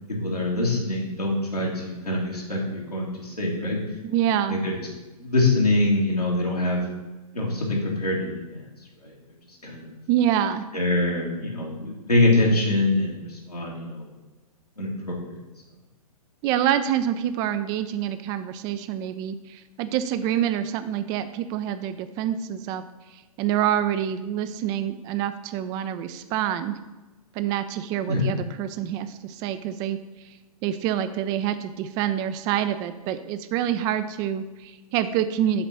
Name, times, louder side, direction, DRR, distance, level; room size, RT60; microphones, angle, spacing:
voice 1, 0.2-3.8 4.5-4.7 5.2-6.8 7.3-8.6 9.0-9.1 9.6-9.9 10.7-14.1 14.8-15.2 28.1-28.4, left 2 dB, 85° left, -4 dB, 2.3 m, -24 dB
voice 2, 4.0-4.6 10.1-10.7 16.4-22.8 23.4-26.8 27.3-30.0 30.6-35.7, right 10 dB, 20° right, 12 dB, 0.4 m, -26 dB
7.1 x 4.1 x 6.1 m, 1.1 s
figure-of-eight pair, 115°, 19 cm